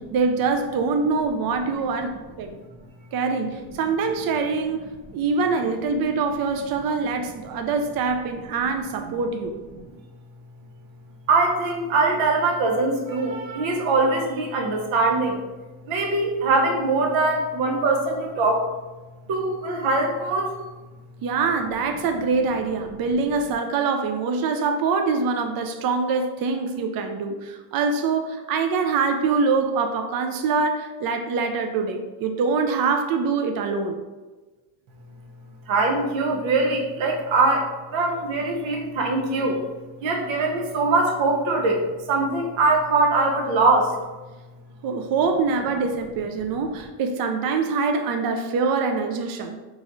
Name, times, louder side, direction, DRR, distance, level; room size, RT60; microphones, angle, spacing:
voice 1, 0.0-2.5 3.1-9.6 21.2-34.0 44.8-49.6, right 4 dB, 50° right, 5 dB, 0.5 m, -24 dB
voice 2, 11.3-15.4 15.8-18.7 19.3-20.5 35.7-39.6 40.0-43.9, right 3 dB, 70° right, 2 dB, 0.9 m, -22 dB
4.8 x 3.1 x 2.6 m, 1.2 s
cardioid pair, 110°, 48 cm